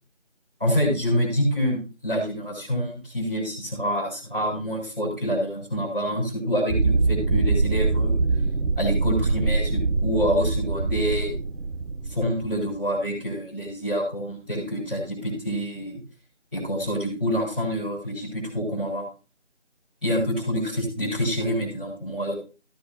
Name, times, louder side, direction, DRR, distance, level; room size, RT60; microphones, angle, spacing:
voice 1, 0.6-8.2 8.8-11.3 12.1-16.0 16.5-19.0 20.0-22.3, equal, 10° right, -13 dB, 4.4 m, -27 dB
sound 1, 6.7-12.9, right 3 dB, 90° right, 0.8 m, -24 dB
14.5 x 8.6 x 2.6 m, 0.33 s
figure-of-eight pair, 175°, 36 cm